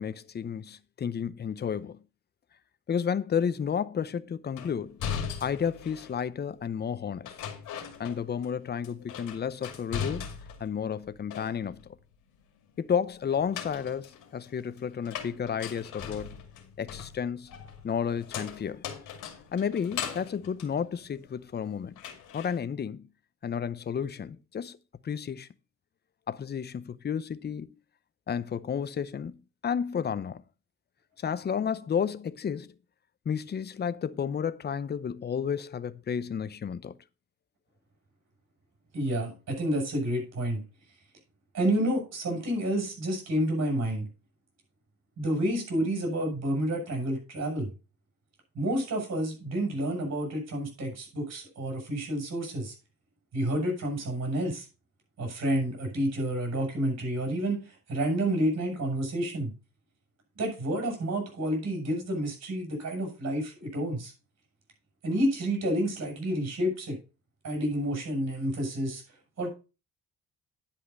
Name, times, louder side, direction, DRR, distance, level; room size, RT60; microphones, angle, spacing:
voice 1, 0.0-2.0 2.9-5.0 5.4-7.3 8.0-10.2 10.6-11.8 12.8-16.4 16.8-17.5 17.8-18.8 19.5-21.9 22.3-23.1 23.4-24.8 25.0-25.5 26.3-27.7 28.3-29.4 29.6-30.4 31.2-32.7 33.3-37.0, left 7 dB, 35° left, 0.7 m, -32 dB
sound 1, 4.6-6.2 7.2-8.5 8.8-10.7 11.0-11.9 13.3-21.6 22.0-22.6, left 8 dB, 85° left, 2.3 m, -39 dB
voice 2, 38.9-40.6 41.5-44.1 45.2-47.7 48.5-52.7 53.3-54.7 55.2-59.5 60.4-64.1 65.0-67.0 67.4-69.0 69.4-69.5, right 1 dB, 60° right, 6.7 m, -29 dB
10.0 x 5.6 x 5.4 m
cardioid pair, 90°, 30 cm